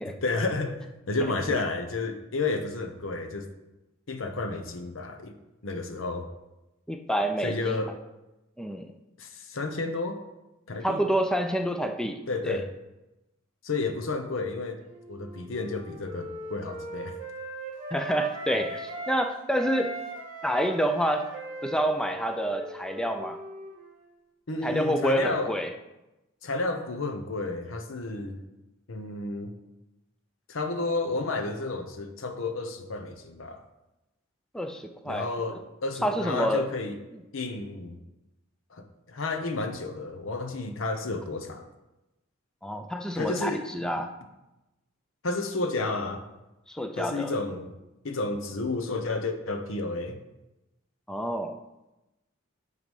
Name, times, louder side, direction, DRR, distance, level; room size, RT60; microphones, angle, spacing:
voice 1, 0.0-3.5 4.1-5.3 5.6-6.3 7.4-8.0 9.2-10.2 10.7-11.0 12.3-12.7 13.6-14.8 15.1-17.2 24.5-25.6 26.4-28.4 28.9-29.5 30.5-33.6 35.1-37.0 37.3-38.0 38.7-41.7 43.2-43.7 45.2-46.2 47.0-47.7 48.0-50.2, left 3 dB, 75° left, 7 dB, 0.9 m, -31 dB
voice 2, 6.9-7.7 8.6-8.9 10.8-12.2 12.4-12.6 17.9-19.9 20.4-21.3 21.6-23.4 24.6-25.7 34.5-35.3 36.0-36.7 42.6-44.1 46.7-47.3 51.1-51.6, equal, 5° left, 5 dB, 0.4 m, -28 dB
Wind instrument woodwind instrument, 14.9-19.3 19.6-24.1, right 1 dB, 20° right, 1.9 m, -40 dB
9.1 x 3.9 x 5.4 m, 0.97 s
head